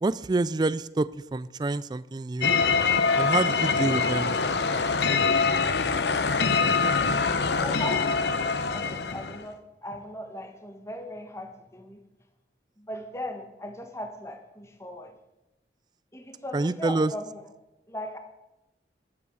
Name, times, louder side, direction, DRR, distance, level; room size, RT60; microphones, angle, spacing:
voice 1, 0.0-2.5 3.2-4.4 16.5-17.1, right 2 dB, 25° right, 17 dB, 0.3 m, -27 dB
sound 1, 2.4-9.5, left 4 dB, 75° left, 0.8 m, -24 dB
voice 2, 7.4-12.0 12.8-15.2 16.1-17.4 17.9-18.2, left 1 dB, 15° left, 6 dB, 1.3 m, -38 dB
11.0 x 8.8 x 6.3 m, 0.98 s
head